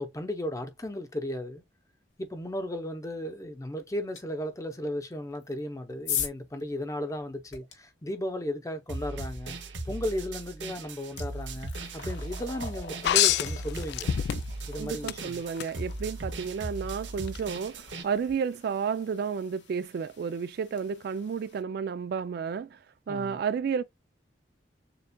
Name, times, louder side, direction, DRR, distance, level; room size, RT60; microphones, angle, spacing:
voice 1, 0.0-1.6 2.2-9.6 9.8-14.1 14.7-15.4 23.1-23.4, left 1 dB, 20° left, 0.7 m, -35 dB
sound 1, 4.2-4.3 5.3-7.7 10.0-10.2 10.6-21.6, left 7 dB, 80° left, 1.4 m, -42 dB
sound 2, 8.9-18.0, right 2 dB, 85° right, 0.9 m, -38 dB
sound 3, 13.0-14.7 15.1-15.7 17.3-17.4, left 11 dB, 65° left, 0.3 m, -25 dB
voice 2, 14.8-22.8 23.1-23.8, right 6 dB, 60° right, 0.3 m, -32 dB
6.8 x 2.4 x 2.2 m
head